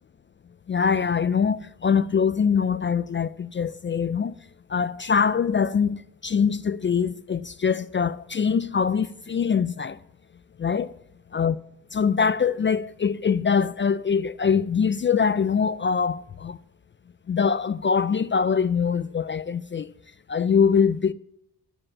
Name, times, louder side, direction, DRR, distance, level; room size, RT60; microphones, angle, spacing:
voice 1, 0.7-4.3 4.7-10.0 10.6-10.9 11.3-11.6 11.9-16.6 17.3-19.9 20.3-21.1, left 6 dB, 30° left, 0.4 m, -23 dB
13.0 x 5.0 x 7.4 m
cardioid pair, 60°, 38 cm